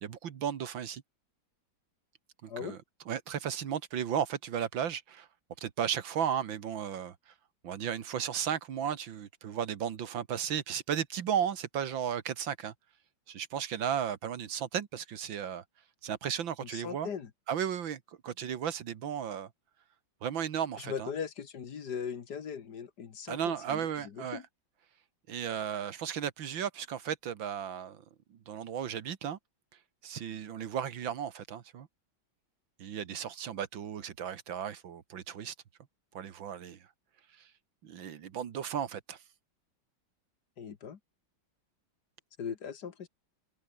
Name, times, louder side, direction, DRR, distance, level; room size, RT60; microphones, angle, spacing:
voice 1, 0.0-1.0 2.4-2.8 3.1-5.3 5.6-7.2 7.6-12.7 13.3-15.6 16.0-17.1 17.5-19.5 20.2-21.1 23.3-24.4 25.3-28.0 28.5-29.4 30.0-31.9 32.8-35.5 36.1-36.8 37.8-39.2, right 8 dB, 75° right, 2.1 m, -35 dB
voice 2, 2.5-2.8 16.6-17.3 20.8-24.4 40.6-41.0 42.4-43.1, left 7 dB, 55° left, 1.9 m, -39 dB
omnidirectional pair, 2.2 m